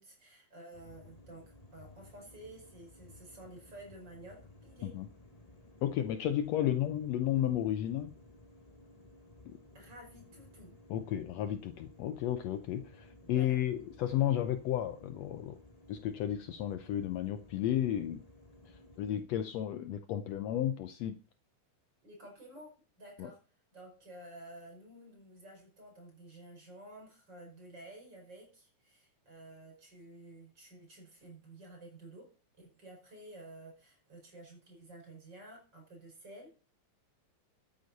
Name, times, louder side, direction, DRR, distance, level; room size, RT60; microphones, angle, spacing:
voice 1, 0.0-4.9 9.7-10.7 13.2-13.6 22.0-23.4 23.7-32.3 32.6-36.5, right 1 dB, 35° right, 1 dB, 5.5 m, -52 dB
sound 1, 0.7-19.2, left 1 dB, 55° left, 0.4 m, -57 dB
voice 2, 5.8-8.1 9.5-9.6 10.9-15.6 15.9-18.2 18.7-21.2 23.2-23.3, left 11 dB, 75° left, 10 dB, 1.7 m, -33 dB
12.5 x 9.6 x 4.1 m, 0.37 s
omnidirectional pair, 3.4 m